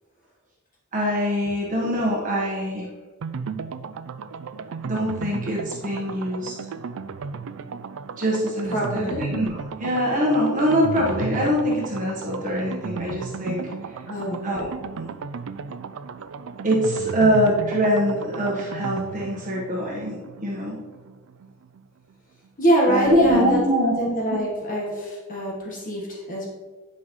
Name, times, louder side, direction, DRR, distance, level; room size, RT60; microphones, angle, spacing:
voice 1, 0.9-2.9 4.8-6.6 8.2-14.0 14.4-14.7 14.9-15.0 16.6-20.8 22.9-23.9 24.3-24.4 24.9-25.0, equal, 35° right, -4 dB, 1.3 m, -23 dB
sound 1, 3.2-21.8 22.1-22.2 22.4-22.5, right 5 dB, 65° right, 0.4 m, -35 dB
voice 2, 8.7-9.3 14.1-14.4 22.6-26.5, right 1 dB, 40° left, -3 dB, 1.4 m, -24 dB
10.0 x 5.7 x 3.1 m, 1.4 s
head